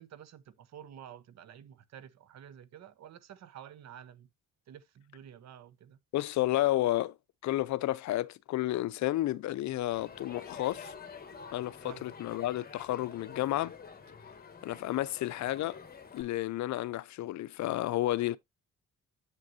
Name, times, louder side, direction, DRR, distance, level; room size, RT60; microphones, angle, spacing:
voice 1, 0.0-4.3 4.7-6.0 11.8-12.1, right 9 dB, 65° right, 0.8 m, -50 dB
voice 2, 6.1-7.2 7.4-10.9 11.5-13.7 14.6-15.8 16.1-18.4, left 15 dB, 70° left, 0.5 m, -31 dB
Crowd, 9.9-16.2, left 6 dB, 30° left, 1.5 m, -48 dB
7.5 x 6.3 x 2.6 m
cardioid pair, 90°, 30 cm